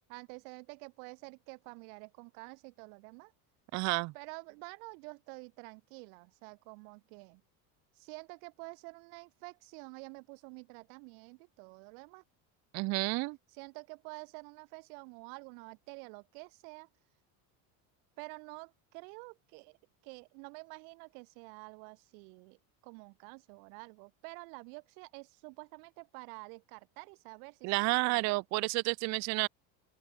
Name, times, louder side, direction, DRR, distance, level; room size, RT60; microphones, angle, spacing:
voice 1, 0.1-3.3 4.1-7.4 7.9-12.2 13.5-16.9 18.2-19.8 20.0-28.3, right 40 dB or more, 75° right, 1.6 m, -49 dB
voice 2, 3.7-4.1 12.7-13.4 27.6-29.5, right 25 dB, 40° right, 0.5 m, -30 dB
open air
cardioid pair, 170°, 44 cm